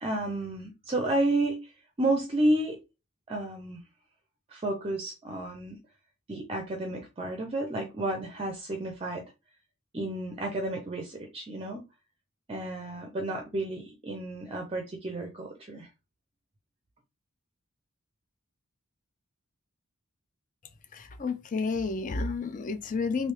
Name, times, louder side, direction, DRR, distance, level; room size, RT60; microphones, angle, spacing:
voice 1, 0.0-1.7 2.0-2.8 3.3-3.8 4.5-5.8 6.3-9.2 9.9-11.8 12.5-15.9, right 1 dB, 25° right, 0.5 m, -31 dB
voice 2, 20.9-23.3, left 4 dB, 35° left, 0.4 m, -31 dB
3.2 x 2.7 x 3.1 m
head